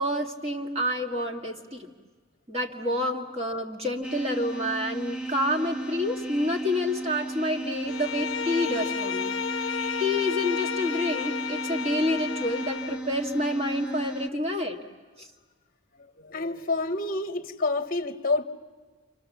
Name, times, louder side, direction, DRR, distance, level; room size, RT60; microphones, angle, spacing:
voice 1, 0.0-1.9 2.5-9.7 10.0-14.8 15.2-15.3, left 1 dB, 30° right, 2.1 m, -28 dB
sound 1, 4.0-14.3, right 2 dB, 5° right, 0.8 m, -35 dB
Bowed string instrument, 7.9-13.1, left 7 dB, 65° left, 0.8 m, -32 dB
voice 2, 16.2-18.4, left 3 dB, 40° left, 1.0 m, -28 dB
30.0 x 27.0 x 7.2 m
head